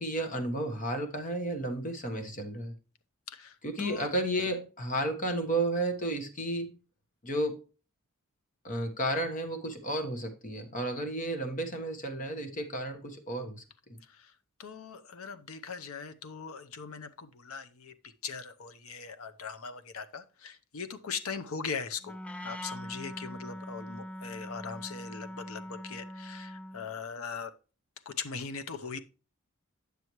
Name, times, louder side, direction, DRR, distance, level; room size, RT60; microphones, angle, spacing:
voice 1, 0.0-2.7 3.6-6.8 7.2-7.6 8.6-13.6 13.9-14.0, right 1 dB, 40° left, 1.3 m, -32 dB
voice 2, 3.3-4.1 14.0-14.3 14.6-17.9 18.2-27.5 28.1-29.0, left 5 dB, 70° left, 0.7 m, -40 dB
Wind instrument woodwind instrument, 22.0-26.9, equal, 5° left, 0.3 m, -42 dB
9.3 x 6.9 x 3.1 m
head